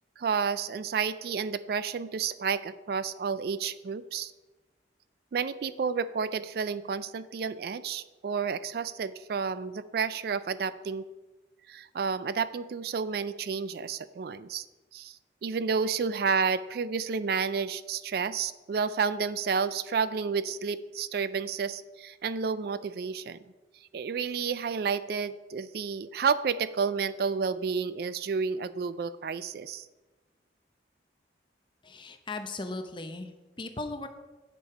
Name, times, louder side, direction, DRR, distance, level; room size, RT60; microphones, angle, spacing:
voice 1, 0.2-4.3 5.3-11.1 11.7-14.6 14.9-23.4 23.9-29.8, right 5 dB, 55° right, 15 dB, 0.3 m, -31 dB
voice 2, 31.8-34.1, left 2 dB, 25° left, 7 dB, 0.7 m, -38 dB
9.2 x 7.0 x 4.9 m, 1.2 s
head